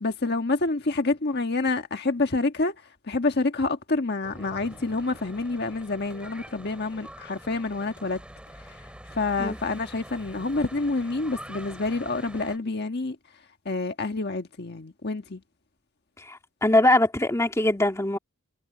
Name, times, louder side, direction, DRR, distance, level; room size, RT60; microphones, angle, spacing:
voice 1, 0.0-8.2 8.6-8.8 9.1-13.2 13.6-15.4, left 3 dB, 50° left, 1.4 m, -28 dB
Church bell / Traffic noise roadway noise, 4.2-12.6, equal, 5° right, 6.9 m, -45 dB
voice 2, 16.2-18.2, left 1 dB, 15° left, 1.9 m, -22 dB
head